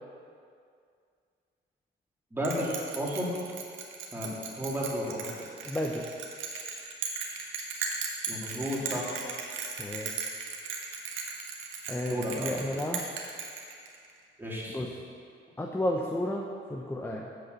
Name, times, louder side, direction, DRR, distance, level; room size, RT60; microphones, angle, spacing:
voice 1, 2.3-3.3 4.1-5.5 8.3-9.1 12.0-12.5 14.4-14.8, equal, 10° right, -6 dB, 3.0 m, -33 dB
Bell, 2.4-14.1, right 5 dB, 80° right, 1.4 m, -37 dB
voice 2, 5.7-6.1 9.8-10.3 11.9-13.0 14.7-14.9 15.6-17.2, left 1 dB, 10° left, 0 dB, 0.8 m, -32 dB
8.2 x 7.3 x 6.9 m, 2.3 s
cardioid pair, 90°, 20 cm